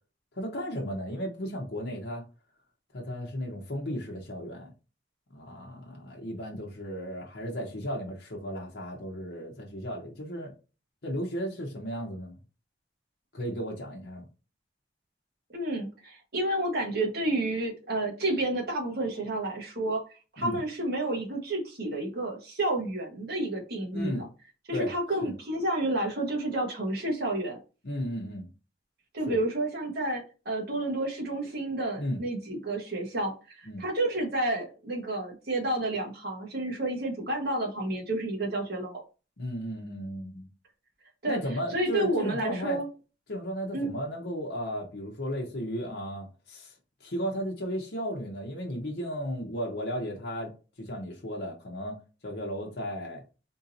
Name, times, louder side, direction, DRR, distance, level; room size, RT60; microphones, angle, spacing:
voice 1, 0.3-2.2 2.9-4.7 5.3-10.5 11.0-12.4 13.3-14.2 20.4-20.6 23.9-24.2 24.7-24.9 25.2-25.3 27.8-28.5 29.3-29.4 32.0-32.2 33.7-33.8 39.4-40.5 41.3-42.8 43.3-46.7 47.0-50.5 50.8-53.2, equal, 60° left, 0.8 m, -35 dB
voice 2, 15.5-20.0 20.3-24.2 24.7-27.6 29.1-39.0 41.2-41.4 41.7-42.9 43.7-43.9, right 1 dB, 60° right, 1.3 m, -30 dB
3.8 x 2.7 x 2.6 m
head